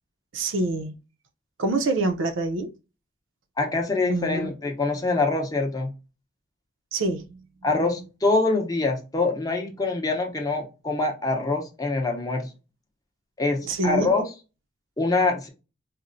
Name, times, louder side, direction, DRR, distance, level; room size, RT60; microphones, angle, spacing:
voice 1, 0.3-0.9 1.6-2.7 4.1-4.5 6.9-7.4 7.7-7.9 13.6-14.1, right 2 dB, 70° right, 0.5 m, -26 dB
voice 2, 3.6-5.9 7.6-12.5 13.4-14.3 15.0-15.5, left 3 dB, 20° left, 0.6 m, -24 dB
4.1 x 2.0 x 2.5 m
head